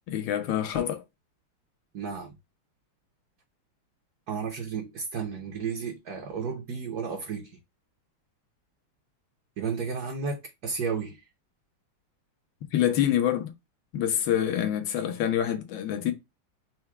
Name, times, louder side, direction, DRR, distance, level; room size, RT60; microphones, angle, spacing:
voice 1, 0.1-1.0 12.7-13.5 13.9-16.1, left 10 dB, 70° left, 1.4 m, -26 dB
voice 2, 1.9-2.3 4.3-7.5 9.6-11.2, right 5 dB, 55° right, 1.2 m, -33 dB
4.5 x 2.3 x 4.5 m
omnidirectional pair, 2.4 m